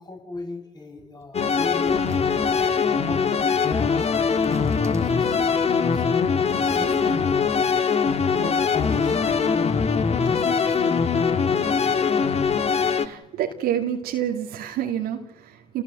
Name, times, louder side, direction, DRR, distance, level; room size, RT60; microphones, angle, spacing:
voice 1, 0.0-2.0 2.3-4.2 4.5-6.2 6.6-7.8 8.1-9.9 10.2-11.0, left 2 dB, 25° left, 2 dB, 6.9 m, -38 dB
sound 1, 1.3-13.1, left 5 dB, 40° left, 1.7 m, -22 dB
sound 2, 1.4-1.5 1.8-3.0 4.3-5.7 6.5-7.6 8.0-9.7 9.9-10.0, right 3 dB, 15° right, 2.4 m, -40 dB
voice 2, 12.9-15.8, right 10 dB, 70° right, 1 dB, 2.4 m, -28 dB
28.0 x 19.0 x 7.8 m, 0.94 s
hypercardioid pair, 55°, 17 cm